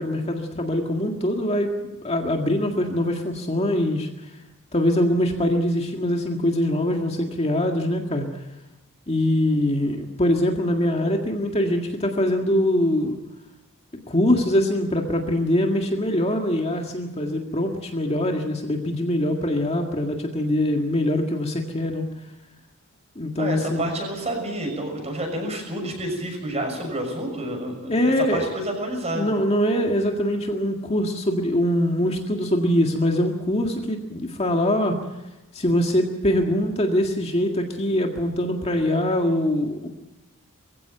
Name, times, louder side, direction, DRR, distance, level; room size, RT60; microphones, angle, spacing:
voice 1, 0.0-4.1 4.7-8.4 9.1-13.2 14.1-22.0 23.2-23.9 27.9-28.5 29.1-35.0 35.5-39.9, left 1 dB, 30° left, 2 dB, 1.9 m, -23 dB
voice 2, 23.4-29.3, right 1 dB, 30° right, 3 dB, 6.3 m, -29 dB
22.0 x 16.0 x 7.9 m, 1.0 s
head